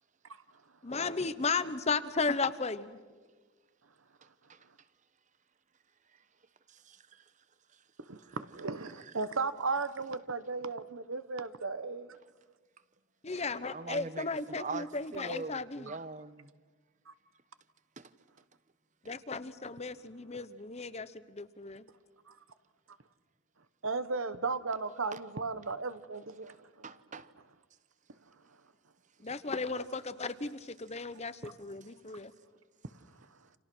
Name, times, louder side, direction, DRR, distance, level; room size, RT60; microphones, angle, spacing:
voice 1, 0.8-3.0 13.2-15.9 19.1-21.8 29.2-32.3, left 4 dB, 30° left, 1.0 m, -35 dB
voice 2, 6.7-7.2 13.7-16.5 18.0-18.1 19.0-19.2 25.1-25.2 26.5-26.6 26.8-27.3, right 3 dB, 35° right, 1.0 m, -42 dB
voice 3, 8.1-12.2 15.9-16.0 17.1-17.2 23.8-26.9 31.4-31.5, right 4 dB, 75° right, 1.2 m, -35 dB
29.5 x 27.5 x 6.3 m
head